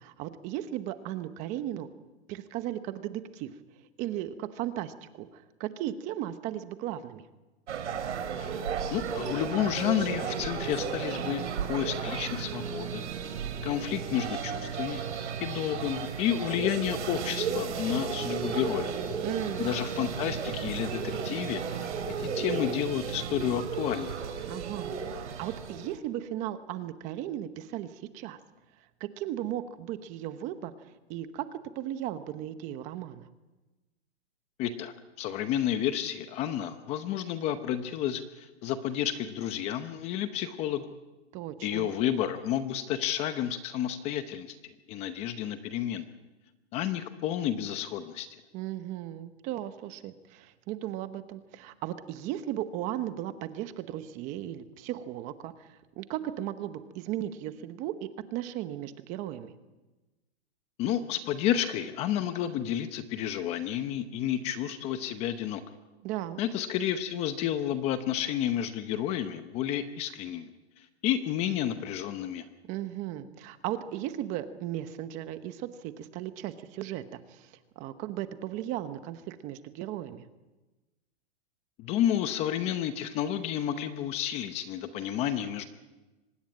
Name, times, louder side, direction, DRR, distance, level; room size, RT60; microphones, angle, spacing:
voice 1, 0.0-1.9 2.3-3.5 4.0-7.3 19.2-19.7 24.5-28.4 29.0-33.3 41.3-41.9 48.5-59.5 66.0-66.4 72.6-80.3, right 12 dB, 20° right, 11 dB, 1.0 m, -36 dB
sound 1, 7.7-26.0, right 6 dB, 90° right, 3.9 m, -34 dB
voice 2, 8.9-11.4 11.7-13.0 13.6-15.0 15.4-18.9 19.6-21.9 22.2-24.2 34.6-40.8 41.6-46.1 46.7-48.3 60.8-65.6 66.4-70.5 70.8-72.4 81.8-85.6, left 10 dB, 20° left, 10 dB, 0.8 m, -31 dB
24.5 x 20.0 x 8.7 m, 1.1 s
hypercardioid pair, 165°, 34 cm